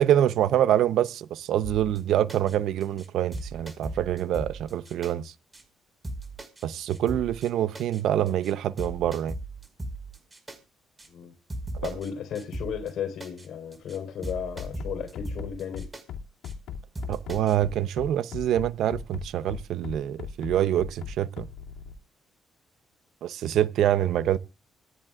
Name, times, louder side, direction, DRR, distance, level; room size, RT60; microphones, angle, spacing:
voice 1, 0.0-5.3 6.6-9.3 17.1-21.5 23.2-24.4, right 11 dB, 80° right, 0.7 m, -25 dB
sound 1, 1.6-2.0 2.3-2.5 2.8-3.1 3.3-5.1 5.5-5.6 6.0-6.6 6.9-7.5 7.7-8.0 8.3-8.5 8.8-10.6 11.0-11.1 11.5-12.1 12.3-12.9 13.2-13.5 13.7-14.0 14.2-16.0 16.4-16.5 16.9-17.5, right 1 dB, 25° right, 5.1 m, -37 dB
voice 2, 11.8-15.9, left 8 dB, 70° left, 3.9 m, -34 dB
Bass drum, 14.6-21.9, left 7 dB, 90° left, 2.5 m, -37 dB
25.5 x 10.5 x 2.4 m
cardioid pair, 90°, 0 cm